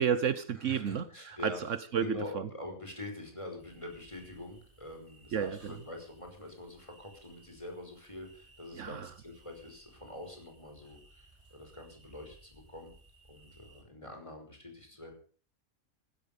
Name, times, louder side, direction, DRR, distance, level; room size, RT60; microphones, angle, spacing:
voice 1, 0.0-2.5 5.3-5.8 8.7-9.1, right 8 dB, 65° right, 14 dB, 1.2 m, -32 dB
voice 2, 0.6-1.6 2.0-11.2 11.5-12.9 13.3-15.1, left 1 dB, 20° left, 3 dB, 5.1 m, -45 dB
sound 1, 3.6-13.8, right 2 dB, 25° right, 6.0 m, -61 dB
15.5 x 12.5 x 6.8 m, 0.42 s
omnidirectional pair, 1.4 m